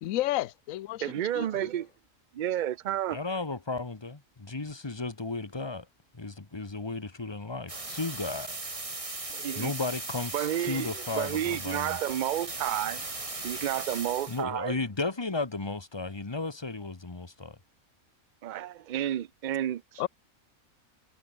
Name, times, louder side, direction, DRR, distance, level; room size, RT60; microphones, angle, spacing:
voice 1, 0.0-1.7 20.0-20.1, left 15 dB, 75° left, 1.0 m, -32 dB
voice 2, 1.0-1.9 2.3-3.2 9.3-9.7 10.3-13.0 13.4-14.8 18.4-20.1, right 11 dB, 80° right, 0.4 m, -31 dB
voice 3, 3.1-5.8 6.1-8.6 9.6-12.0 14.3-17.6, left 3 dB, 20° left, 1.2 m, -34 dB
sound 1, 7.7-14.4, right 2 dB, 25° right, 2.0 m, -38 dB
omnidirectional pair, 1.4 m